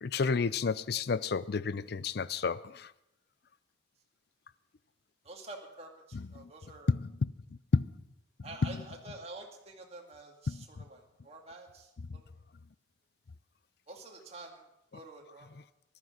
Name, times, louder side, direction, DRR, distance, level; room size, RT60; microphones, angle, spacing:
voice 1, 0.0-2.9 6.1-6.5 6.9-7.3 7.7-7.9 8.6-8.7 10.5-10.6, left 4 dB, 55° left, 0.5 m, -30 dB
voice 2, 5.2-6.9 8.4-12.3 13.9-14.6 14.9-15.5, right 2 dB, 30° right, 2.2 m, -48 dB
14.5 x 12.0 x 6.0 m
head